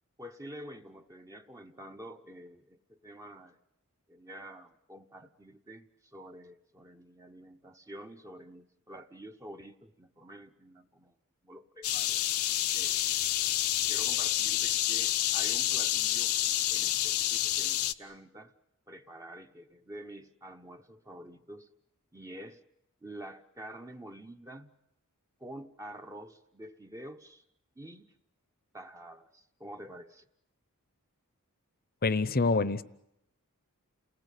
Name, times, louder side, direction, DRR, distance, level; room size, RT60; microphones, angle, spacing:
voice 1, 0.2-3.6 4.1-11.1 11.4-12.2 12.7-13.2 13.9-16.3 16.7-18.5 18.9-21.7 22.1-22.6 23.0-24.7 25.4-27.4 27.8-28.1 28.7-30.2, right 1 dB, 15° right, 5 dB, 0.9 m, -48 dB
sound 1, 11.8-17.9, left 13 dB, 70° left, 0.9 m, -28 dB
voice 2, 32.0-32.8, left 3 dB, 40° left, 16 dB, 0.9 m, -26 dB
29.0 x 19.5 x 8.3 m, 0.83 s
head